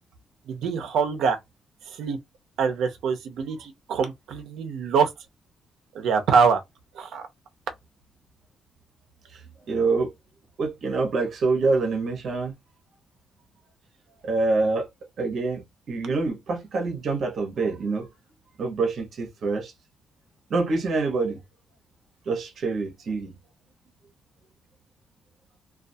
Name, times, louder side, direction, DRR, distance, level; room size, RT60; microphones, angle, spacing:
voice 1, 0.5-1.4 2.0-2.2 2.6-5.1 5.9-6.6 7.0-7.2, right 5 dB, 85° right, 0.6 m, -24 dB
voice 2, 9.7-10.1 10.6-12.5 14.2-14.9 15.2-18.1 18.6-19.7 20.5-21.4 22.3-23.3, right 3 dB, 50° right, 0.9 m, -26 dB
2.4 x 2.3 x 2.6 m
wide cardioid pair, 175°, 0 cm